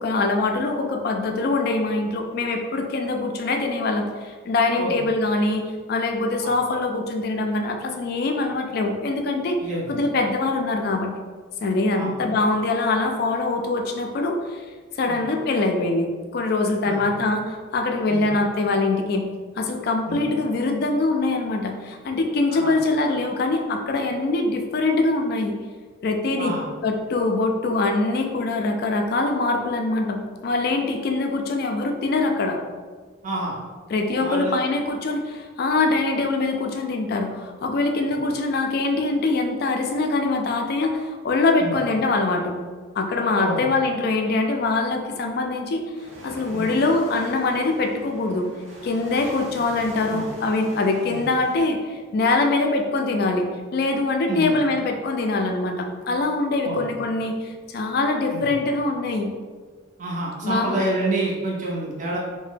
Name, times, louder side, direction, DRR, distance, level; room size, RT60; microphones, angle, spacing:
voice 1, 0.0-9.6 9.9-11.1 11.6-14.6 15.0-19.3 19.6-25.6 26.0-26.6 26.8-32.6 33.9-42.6 43.0-45.8 46.2-48.5 48.8-59.3 60.4-60.8, left 3 dB, 50° left, 3 dB, 0.3 m, -23 dB
voice 2, 9.6-9.9 12.0-12.2 15.1-15.2 16.8-17.0 18.1-18.3 20.1-20.2 22.5-22.7 26.4-26.6 33.2-33.6 34.2-34.7 41.6-41.8 43.4-43.6 46.5-46.7 50.1-50.3 51.1-51.2 54.3-54.5 56.6-56.8 58.3-58.5 60.0-62.2, right 2 dB, 40° right, -4 dB, 0.5 m, -28 dB
sound 1, 45.9-51.6, right 1 dB, 75° right, 0.8 m, -42 dB
2.7 x 2.1 x 3.3 m, 1.5 s
head